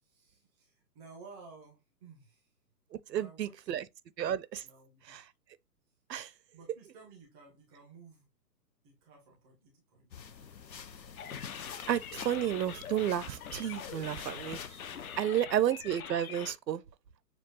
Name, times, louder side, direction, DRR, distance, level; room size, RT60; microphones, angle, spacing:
voice 1, 0.0-2.5 3.1-3.8 4.6-5.3 6.5-8.3 8.8-10.3 14.9-15.8, right 4 dB, ahead, 0.4 m, -55 dB
voice 2, 3.1-3.8 4.2-4.6 5.1-5.2 6.1-6.3 11.9-14.6 15.2-16.8, right 10 dB, 80° right, 0.6 m, -31 dB
sound 1, 10.1-15.2, left 6 dB, 90° left, 0.9 m, -47 dB
sound 2, 11.2-16.5, left 8 dB, 60° left, 0.8 m, -44 dB
6.8 x 2.3 x 2.4 m
hypercardioid pair, 140°, 49 cm